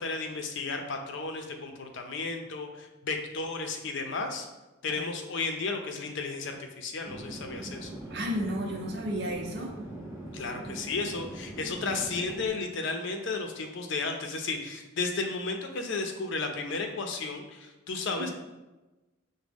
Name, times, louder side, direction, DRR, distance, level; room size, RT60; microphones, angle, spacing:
voice 1, 0.0-4.5 4.8-7.9 10.3-18.3, left 3 dB, 60° left, 4 dB, 0.5 m, -33 dB
Chatter / Fixed-wing aircraft airplane, 7.0-12.5, right 1 dB, 15° right, 0.7 m, -41 dB
voice 2, 8.1-9.8, equal, 55° right, 1 dB, 0.7 m, -33 dB
6.1 x 2.1 x 3.4 m, 1.1 s
head